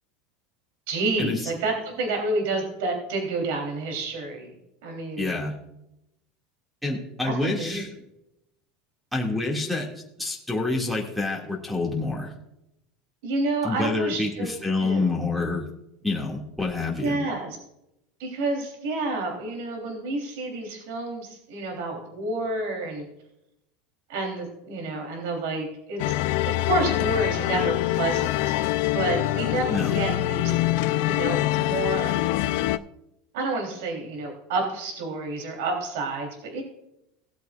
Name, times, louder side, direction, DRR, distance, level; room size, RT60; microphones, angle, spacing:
voice 1, 0.9-4.5 4.8-5.3 7.2-7.8 13.2-14.5 14.8-15.1 17.0-17.6 18.2-23.1 24.1-26.2 26.5-28.5 28.9-30.6 31.1-32.1 33.3-36.6, right 2 dB, 75° right, 2 dB, 3.4 m, -29 dB
voice 2, 5.2-5.6 6.8-7.9 9.1-9.9 10.2-12.3 13.6-15.7 16.0-17.2 29.7-30.0, left 3 dB, ahead, 1 dB, 2.2 m, -27 dB
sound 1, 26.0-32.8, left 15 dB, 65° left, 0.5 m, -24 dB
18.0 x 8.2 x 2.5 m, 0.83 s
supercardioid pair, 150°, 0 cm